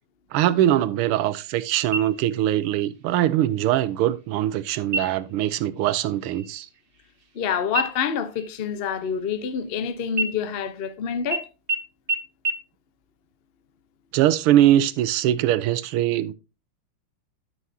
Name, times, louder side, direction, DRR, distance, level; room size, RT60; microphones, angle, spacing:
voice 1, 0.3-6.7 14.1-16.3, right 12 dB, 85° right, 1.6 m, -22 dB
sound 1, 1.9-2.6 3.0-3.1 3.6-4.1 4.8-5.4 5.8-6.0 6.3-7.4 7.7-9.7 10.1-10.9 11.3-11.4 11.7-11.8 12.1-12.2 12.4-12.5, right 3 dB, 40° right, 0.8 m, -30 dB
voice 2, 7.3-11.5, left 7 dB, 75° left, 0.5 m, -27 dB
13.0 x 6.2 x 2.7 m
omnidirectional pair, 2.4 m